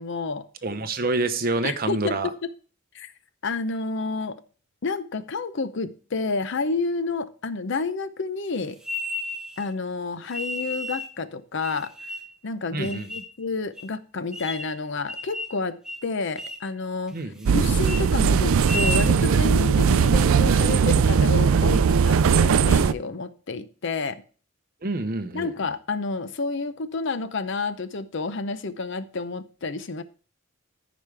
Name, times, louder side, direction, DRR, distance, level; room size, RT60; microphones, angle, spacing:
voice 1, 0.0-0.5 1.6-2.5 2.9-3.1 3.4-4.4 4.8-8.8 9.6-11.9 12.4-15.8 16.0-24.2 25.3-30.0, left 3 dB, 60° left, 13 dB, 0.6 m, -30 dB
voice 2, 0.6-2.3 12.7-13.1 17.1-17.5 24.8-25.5, right 3 dB, 45° right, 9 dB, 0.8 m, -27 dB
sound 1, 8.8-9.7 10.3-11.1 11.6-12.4 12.8-13.3 13.8-13.9 14.3-14.8 15.1-15.6 15.8-16.1 16.4-16.7 17.1-17.5 17.8-18.0 18.5-19.1, left 1 dB, 5° right, 0.8 m, -33 dB
sound 2, 17.5-22.9, right 6 dB, 75° right, 0.4 m, -19 dB
14.5 x 5.1 x 3.4 m, 0.40 s
head